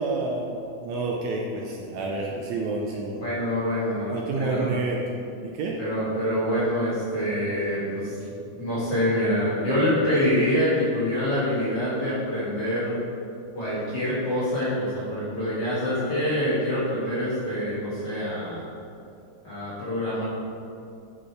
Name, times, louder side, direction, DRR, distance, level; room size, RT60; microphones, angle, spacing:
voice 1, 0.0-3.2 4.1-5.2 5.4-5.8, right 3 dB, 75° right, -1 dB, 1.8 m, -29 dB
voice 2, 3.2-4.7 5.8-8.2 8.6-13.0 13.5-18.7 19.4-20.2, equal, 40° left, -9 dB, 1.9 m, -26 dB
8.5 x 5.1 x 4.6 m, 2.6 s
omnidirectional pair, 3.6 m